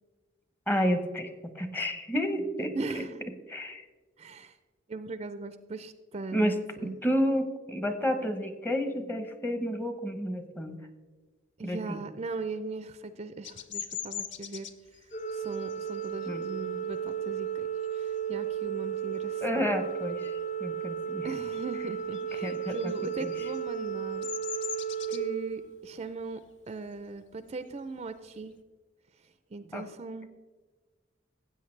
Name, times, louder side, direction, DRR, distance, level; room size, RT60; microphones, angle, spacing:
voice 1, 0.7-3.0 3.5-3.8 6.3-6.5 6.8-10.8 11.6-12.0 16.3-16.5 19.4-20.3 20.6-21.3 22.4-22.9 23.2-23.3 29.7-29.8, equal, 10° left, 8 dB, 0.8 m, -30 dB
voice 2, 2.7-3.2 4.2-4.6 4.9-7.0 11.6-14.7 15.3-17.7 17.9-19.9 21.2-24.3 25.1-28.5 29.5-30.3, right 3 dB, 35° right, 12 dB, 0.4 m, -39 dB
Bird vocalization bird call bird song, 13.4-18.6 19.1-19.4 19.7-20.9 21.2-28.6, left 8 dB, 70° left, 0.6 m, -43 dB
Organ, 15.1-26.2, right 8 dB, 40° left, 0.8 m, -34 dB
15.5 x 8.4 x 3.2 m, 1.3 s
head